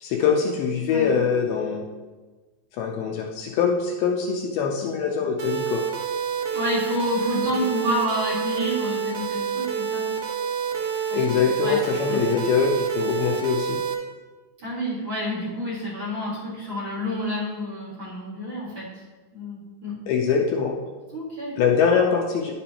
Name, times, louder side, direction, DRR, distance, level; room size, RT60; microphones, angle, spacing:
voice 1, 0.0-1.9 2.8-5.8 11.1-13.8 20.1-20.8 21.6-22.5, left 6 dB, 80° left, 1 dB, 2.4 m, -23 dB
sound 1, 5.4-13.9, right 7 dB, 75° right, 1.8 m, -28 dB
voice 2, 6.5-10.2 11.1-11.8 12.1-12.2 14.6-19.0 19.3-20.0 21.1-21.6, equal, 40° right, -6 dB, 2.1 m, -29 dB
11.0 x 6.9 x 2.9 m, 1.3 s
omnidirectional pair, 4.8 m